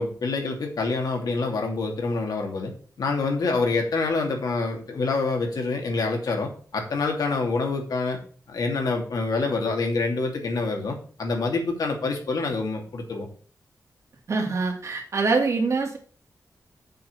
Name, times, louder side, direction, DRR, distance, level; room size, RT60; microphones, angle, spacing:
voice 1, 0.0-2.7 3.0-8.2 8.5-13.3, left 3 dB, 85° left, 2 dB, 2.7 m, -26 dB
voice 2, 14.3-16.0, right 4 dB, 50° right, 2 dB, 2.4 m, -24 dB
7.6 x 5.5 x 7.0 m, 0.41 s
wide cardioid pair, 170°, 6 cm